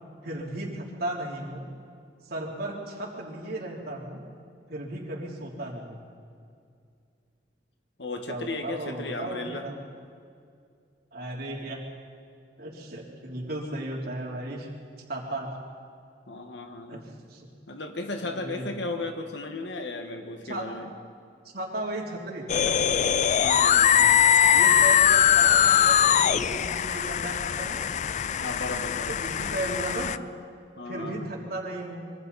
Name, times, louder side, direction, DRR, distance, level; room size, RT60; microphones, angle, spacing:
voice 1, 0.2-1.7 2.2-4.2 4.7-6.0 8.3-9.7 11.1-11.8 12.6-14.7 15.1-15.5 16.9-17.0 17.3-17.5 18.2-19.0 20.4-20.7 21.5-22.9 24.5-27.9 29.1-30.1 30.9-32.0, right 1 dB, 60° right, -1 dB, 3.5 m, -35 dB
voice 2, 8.0-9.6 16.3-17.0 17.7-20.9 23.4-24.2 28.4-29.2 30.8-31.3, left 2 dB, 75° left, 5 dB, 1.6 m, -35 dB
sound 1, 22.5-30.2, left 8 dB, 45° left, 0.4 m, -21 dB
25.5 x 24.0 x 4.2 m, 2.3 s
head